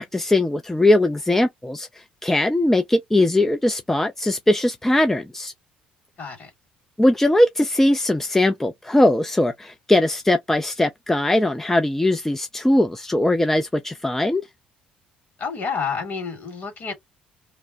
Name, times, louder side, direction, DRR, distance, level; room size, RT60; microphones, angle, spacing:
voice 1, 0.0-5.5 7.0-14.4, left 1 dB, 10° left, 0.4 m, -20 dB
voice 2, 6.2-6.5 15.4-16.9, left 5 dB, 45° left, 1.8 m, -29 dB
2.9 x 2.1 x 2.5 m
figure-of-eight pair, 50°, 4 cm